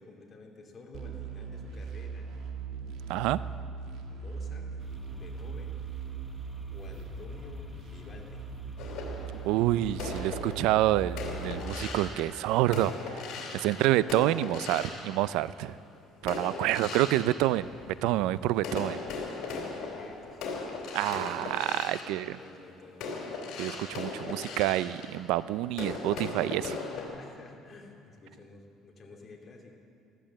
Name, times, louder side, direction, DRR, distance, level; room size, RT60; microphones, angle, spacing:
voice 1, 0.0-2.3 4.1-4.8 5.1-5.8 6.7-8.5 19.4-20.8 22.0-23.3 26.9-29.8, left 3 dB, 35° left, 0 dB, 2.6 m, -51 dB
sound 1, 0.9-11.6, right 5 dB, 65° right, 1.9 m, -40 dB
voice 2, 3.1-3.4 9.4-13.2 13.5-15.8 16.2-17.7 18.0-19.0 20.9-22.4 23.6-26.8, right 15 dB, 85° right, 17 dB, 0.4 m, -28 dB
sound 2, 4.8-12.2, equal, 10° left, 0.9 m, -48 dB
sound 3, 8.8-15.7 16.2-18.2 18.6-27.1, left 4 dB, 70° left, 3.6 m, -39 dB
14.0 x 13.5 x 7.6 m, 2.6 s
cardioid pair, 115°, 0 cm